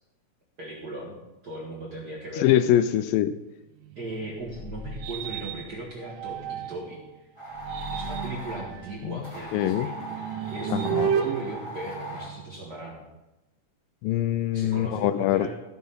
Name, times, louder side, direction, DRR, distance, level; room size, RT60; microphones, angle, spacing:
voice 1, 0.6-1.2 1.4-2.6 3.9-7.0 7.9-10.0 10.5-13.0 14.5-15.5, right 2 dB, 45° right, -3 dB, 1.4 m, -37 dB
voice 2, 2.4-3.3 9.0-9.2 9.5-9.9 10.7-11.1 14.0-15.5, left 12 dB, 85° left, 12 dB, 2.2 m, -23 dB
sound 1, 3.8-7.0 7.5-12.7, right 9 dB, 85° right, 2.5 m, -33 dB
sound 2, 4.3-6.5 7.5-9.5, left 5 dB, 65° left, 0.9 m, -45 dB
sound 3, 7.4-8.7 9.2-12.3, right 1 dB, 30° left, 0.5 m, -39 dB
14.5 x 5.9 x 5.6 m, 0.99 s
omnidirectional pair, 4.0 m